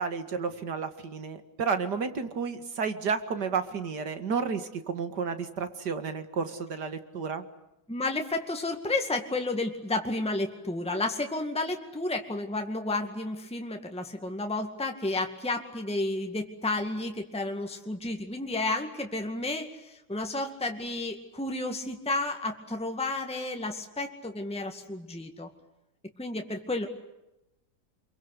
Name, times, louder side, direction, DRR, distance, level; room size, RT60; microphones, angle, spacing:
voice 1, 0.0-7.4, right 5 dB, 75° right, 9 dB, 2.6 m, -31 dB
voice 2, 7.9-25.5 26.2-26.9, left 2 dB, 5° left, 4 dB, 2.0 m, -32 dB
28.0 x 23.0 x 8.3 m, 0.92 s
omnidirectional pair, 1.8 m